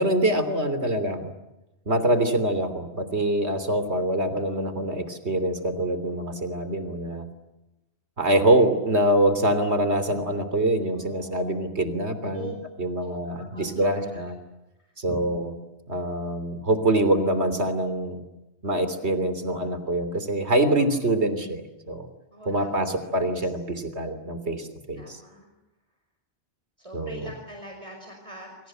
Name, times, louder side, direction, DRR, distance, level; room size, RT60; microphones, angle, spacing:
voice 1, 0.0-1.3 1.9-7.3 8.2-14.4 15.0-15.5 15.9-18.2 18.6-22.1 22.5-25.2 26.9-27.3, right 1 dB, 75° right, 10 dB, 3.5 m, -25 dB
voice 2, 10.9-11.6 12.3-12.5 13.0-13.1 13.5-14.2 15.1-15.2 20.8-21.0 22.3-23.5 25.0-25.5 26.8-28.7, right 1 dB, 30° right, 2 dB, 5.2 m, -42 dB
28.5 x 25.5 x 8.0 m, 0.96 s
omnidirectional pair, 1.1 m